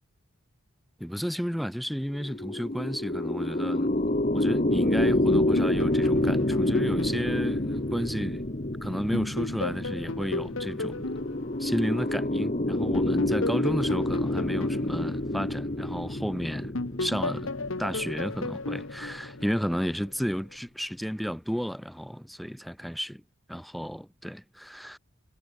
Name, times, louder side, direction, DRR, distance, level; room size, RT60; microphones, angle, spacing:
voice 1, 1.0-8.4 8.8-11.1 11.6-16.7 17.0-17.5 17.8-23.2 23.5-25.0, equal, ahead, 1.6 m, -32 dB
sound 1, 2.1-19.6, left 1 dB, 35° left, 1.5 m, -28 dB
sound 2, 5.3-8.7 9.1-12.4 12.9-16.3 16.7-20.0, left 2 dB, 65° left, 1.5 m, -35 dB
head